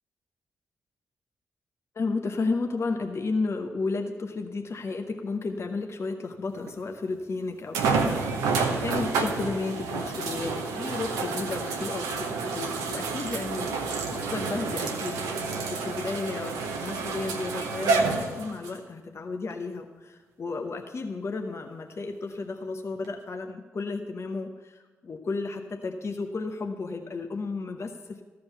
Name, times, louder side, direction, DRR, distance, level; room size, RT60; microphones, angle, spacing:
voice 1, 1.9-28.2, left 3 dB, 50° left, 3 dB, 0.9 m, -33 dB
sound 1, 6.7-6.8 7.7-18.8 19.5-19.6 23.0-23.1, right 4 dB, 85° right, 0.9 m, -29 dB
13.5 x 5.1 x 7.0 m, 1.3 s
hypercardioid pair, 40°, 6 cm